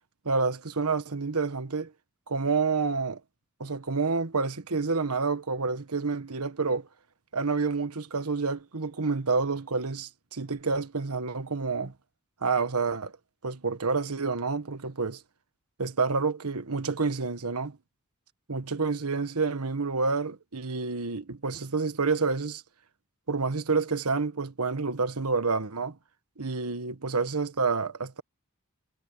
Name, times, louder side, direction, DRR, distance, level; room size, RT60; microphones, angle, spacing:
voice 1, 0.2-1.9 2.3-3.2 3.6-6.9 7.3-11.9 12.4-13.1 13.4-15.2 15.8-17.8 18.5-22.6 23.3-26.0 26.4-28.2, right 4 dB, 85° right, 1.4 m, -28 dB
head